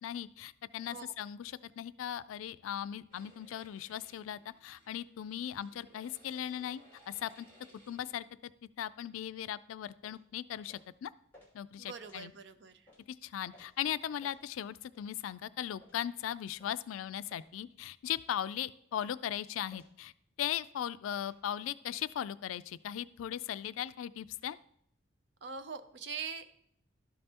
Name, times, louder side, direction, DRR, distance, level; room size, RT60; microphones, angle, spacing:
voice 1, 0.0-6.8 7.1-7.5 7.9-8.2 8.8-11.1 11.5-12.3 13.2-20.1 20.4-24.6, left 10 dB, 90° left, 16 dB, 0.3 m, -38 dB
sound 1, 3.1-8.3, equal, 80° right, 3.3 m, -62 dB
sound 2, 10.0-10.2 10.7-10.9 11.3-11.5 12.0-12.2 12.9-13.0 13.5-13.7 14.2-14.4 14.9-15.1 15.8-16.0 16.6-16.8 17.3-17.5 18.0-18.2 18.9-19.2 19.7-20.0 20.4-20.6 21.2-21.4, left 1 dB, 10° left, 2.6 m, -60 dB
voice 2, 11.8-12.9 25.4-26.5, right 5 dB, 60° right, 9 dB, 0.6 m, -43 dB
12.5 x 5.4 x 2.9 m, 0.70 s
head